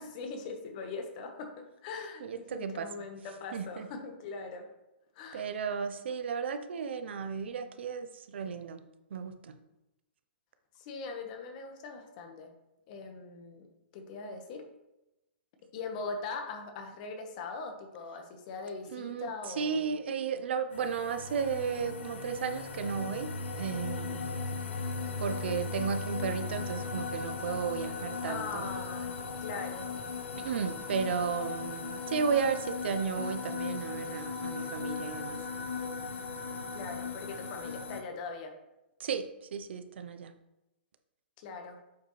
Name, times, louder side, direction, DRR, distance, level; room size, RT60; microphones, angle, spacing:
voice 1, 0.0-4.7 5.1-5.5 10.7-12.5 12.9-13.7 13.9-14.7 15.7-20.0 28.2-29.1 29.4-29.9 36.7-38.6 41.4-41.8, left 4 dB, 40° left, 4 dB, 1.4 m, -41 dB
voice 2, 2.2-2.9 3.5-3.9 5.3-8.8 9.1-9.6 18.9-19.3 19.6-24.4 25.2-28.7 30.4-35.4 39.0-40.3, right 6 dB, 70° right, 9 dB, 0.7 m, -34 dB
sound 1, 20.7-38.0, left 4 dB, 80° left, 1.1 m, -37 dB
8.1 x 5.1 x 3.3 m, 0.96 s
hypercardioid pair, 145°, 6 cm